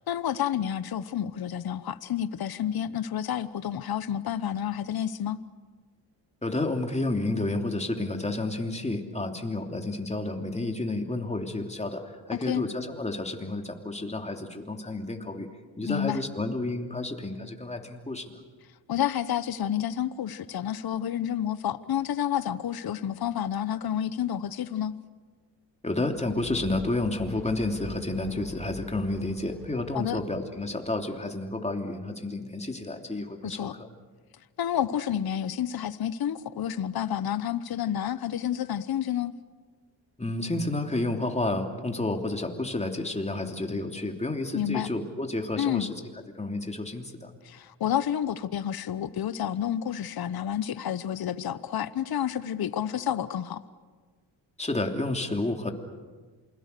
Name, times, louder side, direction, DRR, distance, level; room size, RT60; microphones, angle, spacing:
voice 1, 0.1-5.4 12.3-12.6 15.9-16.2 18.9-24.9 29.9-30.2 33.4-33.7 34.6-39.3 44.5-44.9 45.6-45.9 47.4-53.6, left 10 dB, 50° left, 14 dB, 1.0 m, -30 dB
voice 2, 6.4-15.5 15.8-18.4 25.8-33.9 40.2-46.0 46.4-47.3 54.6-55.7, left 2 dB, 15° left, 3 dB, 3.1 m, -30 dB
sound 1, 25.9-31.1, left 1 dB, ahead, 2.5 m, -45 dB
28.0 x 22.0 x 6.8 m, 1.4 s
cardioid pair, 65°, 46 cm